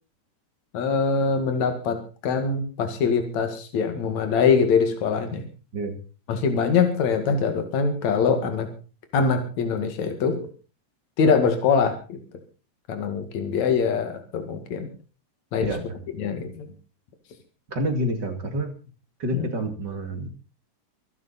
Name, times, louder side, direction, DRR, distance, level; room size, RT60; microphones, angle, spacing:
voice 1, 0.7-5.4 6.3-8.7 9.1-10.4 11.2-12.2 12.9-14.9 15.5-15.7 16.2-16.7 19.3-19.5, left 5 dB, 70° left, 6 dB, 3.3 m, -23 dB
voice 2, 17.7-18.7 19.2-20.3, equal, 40° right, 6 dB, 2.8 m, -28 dB
24.0 x 11.0 x 4.2 m, 0.36 s
omnidirectional pair, 3.3 m